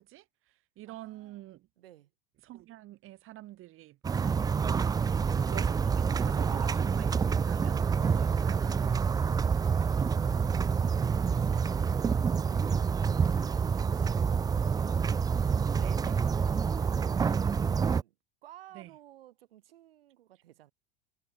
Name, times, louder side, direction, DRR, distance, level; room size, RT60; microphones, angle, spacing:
voice 1, 0.0-1.7 2.4-5.0 5.3-8.7 9.0-9.8 15.7-16.2 18.7-18.9, right 16 dB, 45° right, 3.8 m, -48 dB
voice 2, 0.9-1.5 1.8-2.1 10.1-15.3 15.9-18.2 18.4-20.7, right 13 dB, 70° right, 5.4 m, -55 dB
sound 1, 4.0-18.0, right 6 dB, 10° right, 0.5 m, -27 dB
figure-of-eight pair, 85°, 31 cm